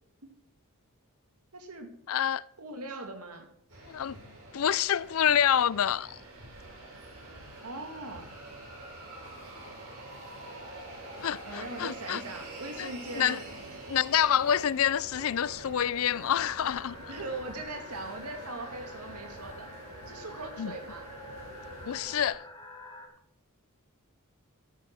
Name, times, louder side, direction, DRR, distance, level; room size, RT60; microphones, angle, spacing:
voice 1, 1.5-1.9 2.6-3.5 7.6-8.3 11.5-13.4 17.1-19.7 20.1-21.1, right 2 dB, 85° right, 2.5 m, -40 dB
voice 2, 2.1-2.4 3.9-4.2 4.5-6.2 11.2-12.2 12.8-13.4 13.9-17.0 20.6-20.7 21.9-22.4, left 9 dB, 65° left, 0.4 m, -27 dB
sound 1, 3.7-22.3, right 2 dB, 70° right, 6.2 m, -46 dB
sound 2, 16.1-23.1, left 2 dB, 20° left, 2.8 m, -48 dB
13.0 x 8.4 x 6.1 m
head